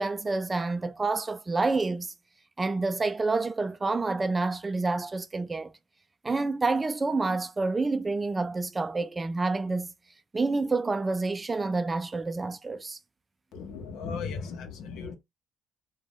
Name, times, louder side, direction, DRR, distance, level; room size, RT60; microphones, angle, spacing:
voice 1, 0.0-2.1 2.6-5.7 6.2-9.9 10.3-13.0, right 3 dB, 25° right, 0.3 m, -28 dB
voice 2, 13.5-15.1, left 5 dB, 75° left, 0.7 m, -36 dB
2.5 x 2.2 x 3.3 m
cardioid pair, 85°, 0 cm